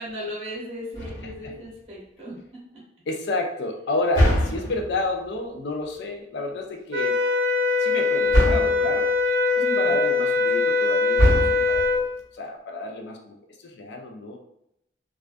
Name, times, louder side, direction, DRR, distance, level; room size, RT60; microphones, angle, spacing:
voice 1, 0.0-2.8 9.6-10.0, equal, 35° right, -6 dB, 0.9 m, -37 dB
sound 1, 0.9-1.6 4.1-5.0 8.3-8.9 11.2-12.0, equal, 45° left, 1.2 m, -22 dB
voice 2, 1.2-1.5 3.1-7.2 7.8-9.1 9.8-12.1 12.3-13.4 13.6-14.4, left 2 dB, 65° left, 2 dB, 0.4 m, -30 dB
sound 2, 6.9-12.1, left 4 dB, 90° right, 0.4 m, -22 dB
2.3 x 2.2 x 2.4 m, 0.78 s
head